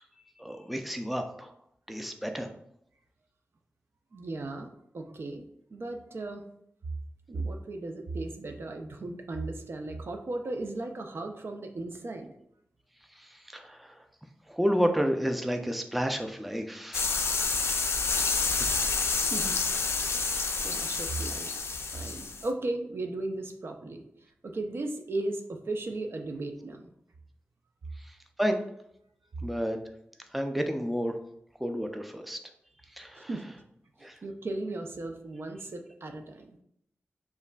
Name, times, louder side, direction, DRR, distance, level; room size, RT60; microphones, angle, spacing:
voice 1, 0.4-1.5 1.9-2.5 13.2-14.0 14.5-17.1 28.0-28.6 29.4-29.8 30.3-31.2 31.6-32.4 33.0-33.3 34.0-34.2, equal, ahead, 5 dB, 0.3 m, -31 dB
voice 2, 4.1-6.4 7.3-12.3 19.3-19.6 20.1-20.3 20.6-21.6 21.9-24.1 24.4-26.9 33.2-33.4 34.2-36.6, right 2 dB, 65° right, 5 dB, 0.4 m, -36 dB
sound 1, 16.9-22.5, left 4 dB, 75° left, 0.4 m, -29 dB
5.2 x 2.5 x 2.2 m, 0.75 s
wide cardioid pair, 80°, 4 cm